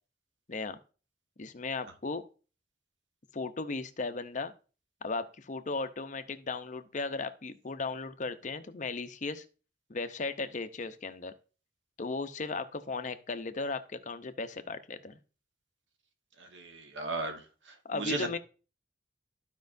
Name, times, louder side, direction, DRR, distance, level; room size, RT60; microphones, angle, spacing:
voice 1, 1.4-2.3 3.3-4.5 5.0-9.4 9.9-11.3 12.0-15.2 17.8-18.4, left 3 dB, 45° left, 9 dB, 0.7 m, -36 dB
voice 2, 16.4-18.4, right 2 dB, 90° right, 5 dB, 1.4 m, -36 dB
14.0 x 5.2 x 2.6 m, 0.36 s
head